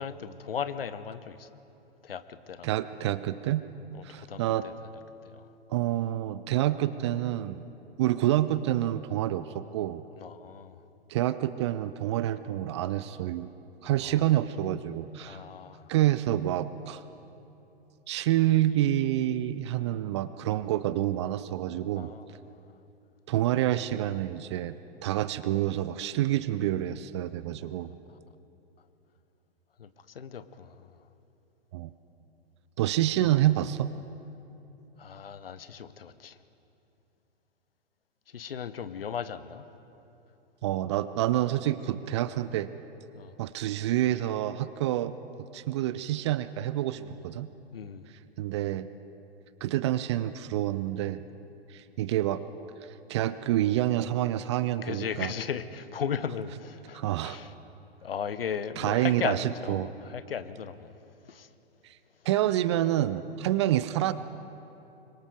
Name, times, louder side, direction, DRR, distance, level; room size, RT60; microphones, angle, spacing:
voice 1, 0.0-1.5 2.0-2.7 3.9-4.7 5.2-5.5 10.2-10.8 13.8-14.2 15.2-15.9 21.9-22.6 27.6-27.7 28.1-28.2 29.8-29.9 30.1-30.9 35.0-36.4 38.3-39.6 43.1-43.3 47.0-47.1 47.7-48.1 54.8-57.5 58.0-60.9 61.2-61.5, left 7 dB, 65° left, 13 dB, 1.0 m, -37 dB
voice 2, 2.6-3.6 4.0-4.6 5.7-7.6 8.0-10.0 11.1-13.5 13.8-15.4 15.9-17.0 18.1-22.1 23.3-24.7 25.0-27.9 31.7-31.9 32.8-33.9 40.6-42.7 43.4-45.2 45.5-47.5 48.4-48.9 49.6-51.2 51.7-52.4 53.1-55.3 56.9-57.4 58.8-59.9 61.8-61.9 62.3-64.1, right 13 dB, 30° right, 14 dB, 0.4 m, -27 dB
25.5 x 22.5 x 4.8 m, 2.9 s
figure-of-eight pair, 110°, 32 cm